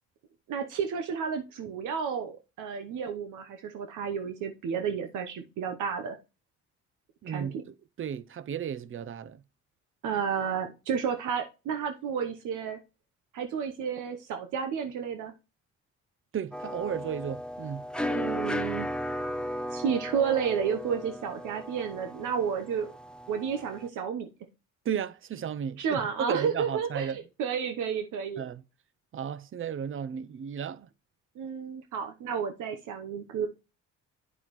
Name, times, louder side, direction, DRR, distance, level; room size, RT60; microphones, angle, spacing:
voice 1, 0.5-6.2 7.3-7.5 10.0-12.8 13.3-15.3 18.0-18.9 19.7-22.9 23.3-24.3 25.8-28.4 31.4-33.5, right 7 dB, 80° right, 0.9 m, -31 dB
voice 2, 7.2-9.4 16.3-17.8 24.8-26.0 26.3-27.2 28.4-28.6 29.1-30.9, right 8 dB, 45° right, 0.6 m, -34 dB
sound 1, 16.5-23.9, left 1 dB, 5° left, 0.6 m, -35 dB
9.1 x 6.1 x 3.1 m
cardioid pair, 90°, 30 cm